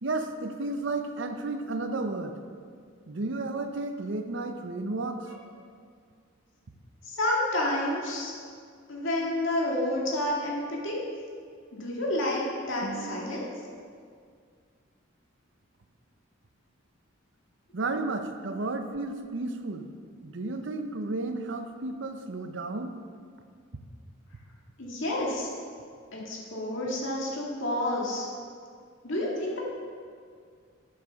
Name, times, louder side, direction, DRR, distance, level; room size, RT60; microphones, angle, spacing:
voice 1, 0.0-2.4 3.1-5.3 12.8-13.7 17.7-19.9 20.2-23.0, right 2 dB, 60° right, 7 dB, 0.7 m, -33 dB
voice 2, 7.0-8.3 8.9-11.0 11.7-13.5 24.8-25.5 26.1-28.3 29.0-29.6, left 1 dB, 65° left, -3 dB, 2.1 m, -29 dB
8.5 x 7.6 x 5.7 m, 2.1 s
head